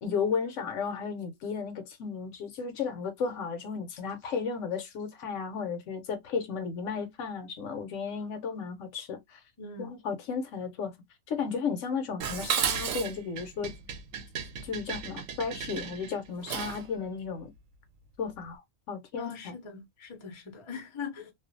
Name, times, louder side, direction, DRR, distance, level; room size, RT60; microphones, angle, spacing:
voice 1, 0.0-9.4 9.8-10.9 11.3-13.7 14.6-17.5 18.2-19.6, left 5 dB, 70° left, 0.9 m, -34 dB
voice 2, 9.6-9.9 19.2-21.3, left 5 dB, 35° left, 0.5 m, -41 dB
Dishes pots and pans, 12.2-16.9, right 7 dB, 75° right, 1.0 m, -34 dB
2.4 x 2.3 x 2.5 m
omnidirectional pair, 1.4 m